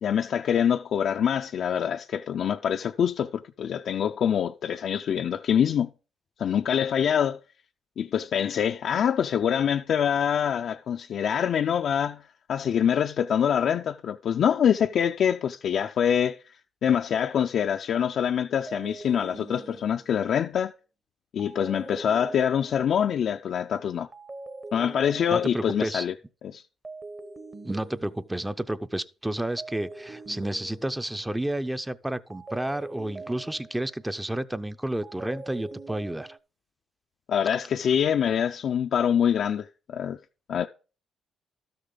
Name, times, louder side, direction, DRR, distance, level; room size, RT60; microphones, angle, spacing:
voice 1, 0.0-5.9 6.4-7.4 8.0-12.2 12.5-16.4 16.8-20.7 21.3-24.1 24.7-26.1 26.4-26.6 37.3-40.2 40.5-40.7, left 8 dB, 65° left, 0.3 m, -25 dB
sound 1, 17.3-17.6 18.7-20.4 21.4-23.1 24.1-25.8 26.8-28.5 29.6-31.3 32.3-34.0 35.0-36.4, right 3 dB, 30° right, 0.9 m, -43 dB
voice 2, 25.3-26.1 27.6-36.4, right 1 dB, 10° right, 0.5 m, -31 dB
12.5 x 6.7 x 3.8 m
cardioid pair, 90°, 0 cm